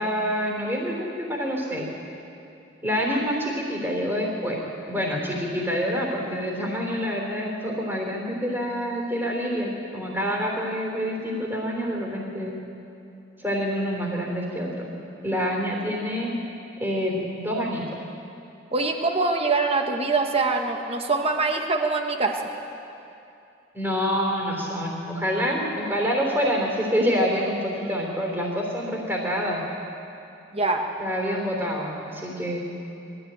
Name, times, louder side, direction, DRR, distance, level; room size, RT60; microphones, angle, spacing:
voice 1, 0.0-1.9 2.8-4.6 4.9-12.5 13.4-14.9 15.2-16.3 16.8-17.8 23.7-29.6 31.0-32.7, equal, 10° right, -1 dB, 3.4 m, -27 dB
voice 2, 18.7-22.4 30.5-30.9, right 3 dB, 30° right, 3 dB, 1.5 m, -24 dB
21.0 x 14.5 x 9.0 m, 2.7 s
head